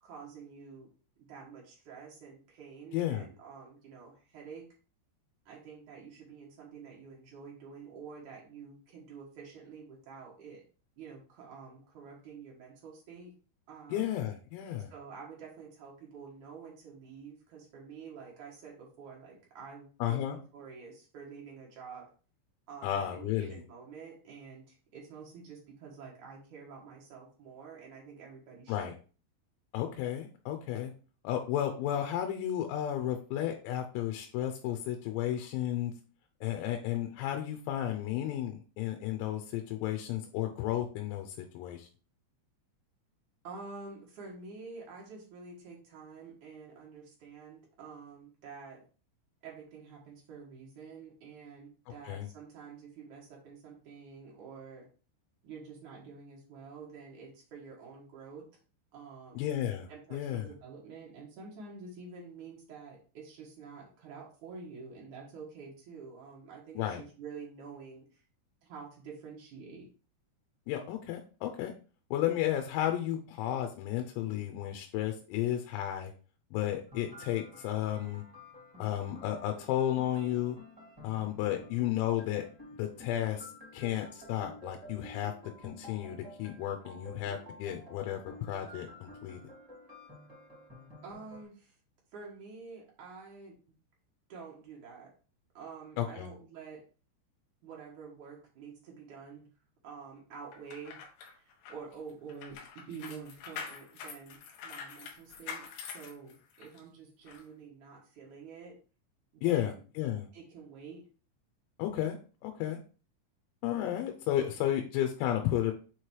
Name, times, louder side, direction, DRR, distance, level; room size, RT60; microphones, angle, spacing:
voice 1, 0.0-0.9 1.2-4.7 5.5-10.6 11.0-13.3 13.7-14.2 14.8-22.1 22.7-28.9 43.4-48.8 49.4-54.9 55.4-58.5 58.9-59.4 59.9-68.2 68.6-69.9 91.0-91.8 92.1-93.6 94.3-95.1 95.5-96.8 97.6-99.5 99.8-108.8 109.3-109.8 110.3-111.0, right 5 dB, 80° right, -3 dB, 1.7 m, -48 dB
voice 2, 2.9-3.3 13.9-14.9 20.0-20.4 22.8-23.6 28.7-28.9 29.7-30.9 31.3-35.9 36.4-41.9 52.1-52.3 59.4-60.5 66.8-67.0 70.7-71.7 72.1-76.1 76.5-78.2 78.8-80.6 81.0-82.5 82.8-85.3 85.6-89.4 96.0-96.3 109.4-110.3 111.8-112.8 113.6-115.7, left 12 dB, 85° left, 5 dB, 3.5 m, -33 dB
sound 1, 76.9-91.4, left 1 dB, 35° right, 0.5 m, -51 dB
sound 2, 100.5-106.8 107.3-107.4, left 6 dB, 70° left, 2.7 m, -45 dB
7.8 x 3.3 x 4.5 m, 0.38 s
omnidirectional pair, 6.0 m